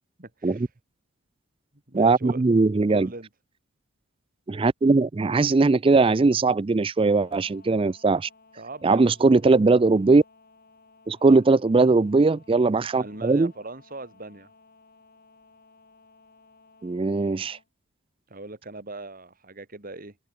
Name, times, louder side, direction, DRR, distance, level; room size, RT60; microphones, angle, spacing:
voice 1, 0.2-0.7 1.9-2.4 2.9-3.3 8.6-9.1 11.2-11.4 13.0-14.5 18.3-20.2, right 2 dB, 40° right, 2.5 m, -40 dB
voice 2, 1.9-3.1 4.5-8.3 8.8-10.2 11.1-13.5 16.8-17.6, right 3 dB, 25° right, 0.4 m, -20 dB
sound 1, 7.0-17.7, left 3 dB, 45° left, 4.8 m, -57 dB
open air
head